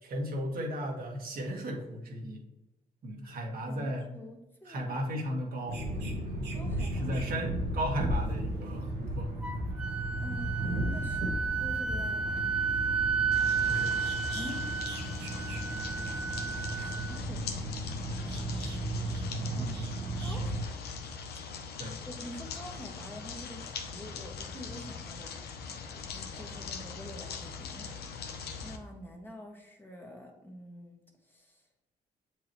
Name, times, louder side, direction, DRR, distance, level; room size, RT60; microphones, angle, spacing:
voice 1, 0.0-2.4 3.0-4.0 4.7-5.8 6.2-6.5 7.0-9.3 13.7-13.9 19.5-19.8 21.8-22.0, equal, 65° right, 0 dB, 1.6 m, -35 dB
voice 2, 3.6-5.0 6.5-7.3 10.2-11.3 11.6-12.5 14.3-14.7 16.7-17.9 18.3-18.9 19.4-19.7 20.0-20.9 22.0-25.3 25.6-31.6, equal, 10° left, 0 dB, 1.6 m, -47 dB
sound 1, 5.7-20.6, right 1 dB, 85° right, 1.7 m, -35 dB
Wind instrument woodwind instrument, 9.4-17.2, right 6 dB, 5° right, 0.7 m, -32 dB
sound 2, 13.3-28.8, left 5 dB, 75° left, 0.8 m, -42 dB
7.5 x 4.9 x 3.1 m, 0.98 s
cardioid pair, 70°, 17 cm